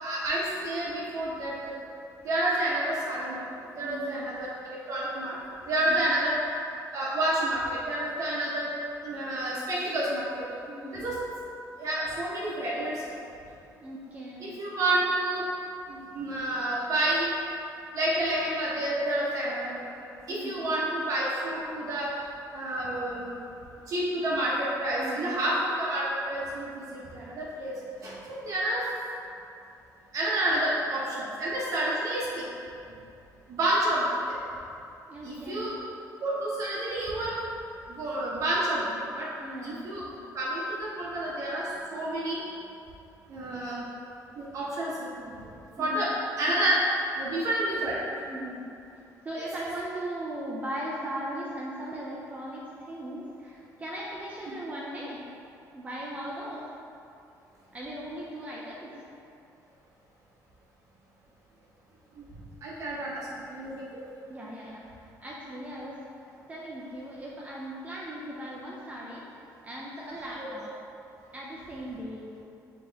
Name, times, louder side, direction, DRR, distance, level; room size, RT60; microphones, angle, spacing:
voice 1, 0.0-1.7 2.2-3.4 3.8-4.5 4.9-5.3 5.7-6.4 6.9-7.6 7.9-8.7 9.0-10.3 10.9-11.2 11.8-12.9 14.4-15.4 15.9-17.3 17.9-19.8 20.3-22.1 22.5-23.3 23.9-26.8 27.1-27.7 28.0-28.8 30.1-32.4 33.6-34.0 35.2-35.8 36.2-37.4 38.0-38.8 39.1-39.3 39.6-40.0 40.3-41.6 41.9-42.4 43.3-43.9 44.4-45.3 45.8-46.1 46.4-46.8 47.1-48.0 54.5-54.6 62.6-63.8 70.4-70.5, right 1 dB, 50° right, -6 dB, 0.8 m, -29 dB
voice 2, 3.8-4.2 5.8-6.1 10.7-11.1 13.8-14.5 20.3-20.6 25.0-25.4 35.1-35.7 39.4-39.9 45.8-46.1 48.3-48.7 49.2-55.3 55.7-56.7 57.7-59.0 64.3-66.0 66.5-70.7 71.3-72.3, right 1 dB, 20° right, -5 dB, 0.5 m, -38 dB
5.2 x 2.9 x 3.4 m, 2.7 s
cardioid pair, 125°, 7 cm